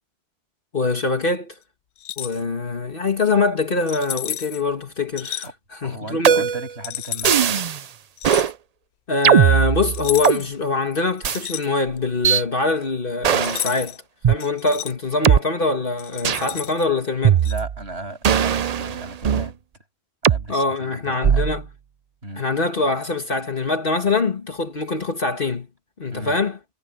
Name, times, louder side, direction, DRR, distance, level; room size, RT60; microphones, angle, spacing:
voice 1, 0.7-1.6 2.2-6.5 9.1-14.0 14.3-17.5 20.5-21.7 22.4-25.7 26.0-26.6, left 3 dB, 55° left, 1.9 m, -23 dB
sound 1, 2.0-2.4 3.9-4.6 5.2-5.5 6.8-7.4 8.2-8.5 9.9-10.6 10.9-12.1 13.4-14.0 14.4-14.9 16.0-16.8 17.4-17.6, left 12 dB, 75° left, 0.9 m, -31 dB
voice 2, 5.8-7.7 17.4-19.6 20.2-21.4 22.2-22.4 26.1-26.4, right 2 dB, 75° right, 7.8 m, -36 dB
sound 2, 6.2-6.7 7.2-7.8 8.2-8.5 9.2-10.4 11.2-11.4 12.2-12.4 13.2-13.7 14.2-14.4 15.2-15.4 16.2-16.5 17.2-17.8 18.2-19.5 20.2-20.4 21.2-21.6, right 8 dB, 50° right, 0.5 m, -18 dB
omnidirectional pair, 1.1 m